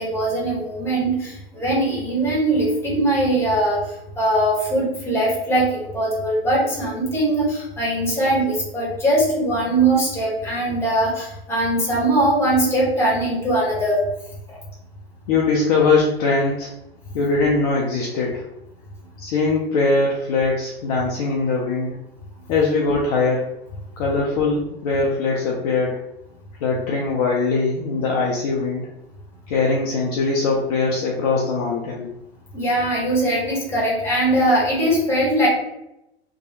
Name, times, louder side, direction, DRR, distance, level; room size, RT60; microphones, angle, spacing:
voice 1, 0.0-14.0 14.5-14.6 32.5-35.5, right 1 dB, 5° left, -4 dB, 1.0 m, -21 dB
voice 2, 15.3-16.7 17.1-18.4 19.2-21.9 22.5-23.5 24.0-26.0 26.6-28.9 29.5-32.1, left 3 dB, 40° left, -3 dB, 0.5 m, -21 dB
2.7 x 2.3 x 2.6 m, 0.86 s
figure-of-eight pair, 100°, 32 cm